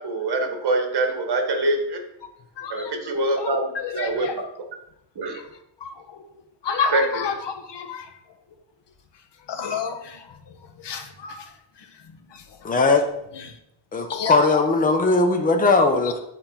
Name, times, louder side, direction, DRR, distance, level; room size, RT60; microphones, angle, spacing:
voice 1, 0.0-2.0 2.7-4.3 5.2-5.4 6.9-7.3, right 2 dB, 60° right, 4 dB, 1.8 m, -24 dB
voice 2, 2.6-2.9 3.4-3.5 3.8-4.3 5.8-5.9 6.6-7.3 7.7-8.0 9.5-10.0 10.8-11.4 14.1-14.4, left 6 dB, 65° left, 5 dB, 1.3 m, -28 dB
voice 3, 12.6-13.1 13.9-16.2, left 3 dB, 20° left, 3 dB, 0.9 m, -19 dB
8.7 x 4.3 x 5.8 m, 0.81 s
cardioid pair, 120°, 46 cm